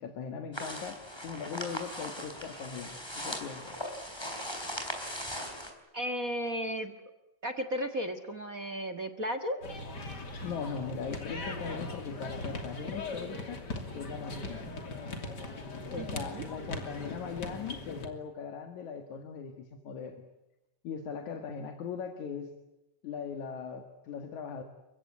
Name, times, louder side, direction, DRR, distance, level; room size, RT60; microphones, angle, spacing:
voice 1, 0.0-3.8 10.3-13.6 13.9-14.7 15.9-20.3 20.8-22.5 23.0-24.6, left 6 dB, 80° left, 6 dB, 3.2 m, -40 dB
sound 1, 0.5-5.7, equal, 10° left, 4.5 m, -39 dB
voice 2, 5.9-6.9 7.4-9.6 16.0-16.5, equal, 35° right, 10 dB, 1.6 m, -34 dB
sound 2, 9.6-18.1, left 2 dB, 35° left, 3.2 m, -39 dB
30.0 x 16.5 x 9.6 m, 0.99 s
omnidirectional pair, 3.3 m